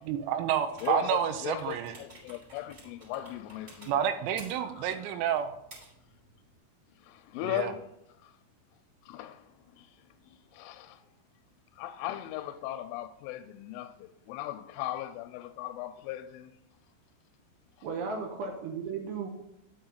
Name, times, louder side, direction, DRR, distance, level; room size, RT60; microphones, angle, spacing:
voice 1, 0.0-2.0 3.9-5.6 7.4-7.7, right 9 dB, 90° right, 3.5 m, -29 dB
sound 1, 0.7-6.6, right 1 dB, 20° right, 3.3 m, -54 dB
voice 2, 0.8-4.0 4.8-4.9 7.1-7.9 8.2-8.3 9.1-9.5 9.8-9.9 10.3-11.0 11.8-16.5 18.1-18.3, left 13 dB, 85° left, 2.9 m, -38 dB
voice 3, 17.8-19.3, right 5 dB, 75° right, 2.6 m, -35 dB
10.0 x 7.0 x 3.9 m
omnidirectional pair, 5.9 m